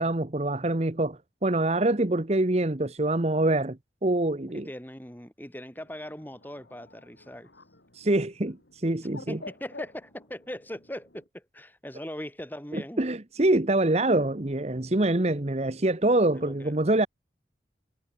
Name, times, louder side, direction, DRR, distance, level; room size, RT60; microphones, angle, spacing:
voice 1, 0.0-4.7 7.9-9.4 12.7-17.1, right 2 dB, 35° right, 1.1 m, -25 dB
voice 2, 4.5-7.5 9.3-13.0 16.3-16.7, equal, 10° left, 4.4 m, -40 dB
Bird, 5.7-11.3, left 2 dB, 80° left, 5.1 m, -50 dB
head